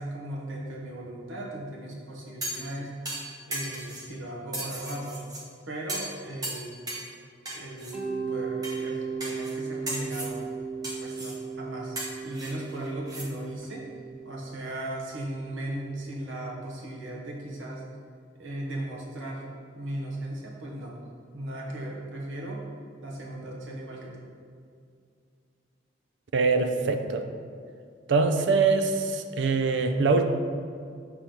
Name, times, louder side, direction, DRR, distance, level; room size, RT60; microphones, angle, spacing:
voice 1, 0.0-2.9 3.5-5.2 5.7-6.7 7.5-10.4 11.0-12.0 12.2-13.9 14.2-17.8 18.4-19.4 19.7-20.9 21.3-22.6 23.0-24.3, right 1 dB, 85° right, -2 dB, 0.9 m, -37 dB
sound 1, 2.4-2.7 3.1-4.1 4.5-5.4 5.9-6.2 6.4-7.1 7.5-7.9 8.6-8.8 9.2-9.6 9.9-10.3 10.8-11.4 12.0-13.3 13.6-13.7, right 1 dB, 20° right, 0.8 m, -36 dB
Mallet percussion, 7.9-16.7, right 5 dB, 5° right, 0.5 m, -37 dB
voice 2, 26.3-27.2 28.1-30.3, right 4 dB, 65° right, 6 dB, 0.4 m, -23 dB
7.0 x 3.0 x 5.1 m, 2.3 s
head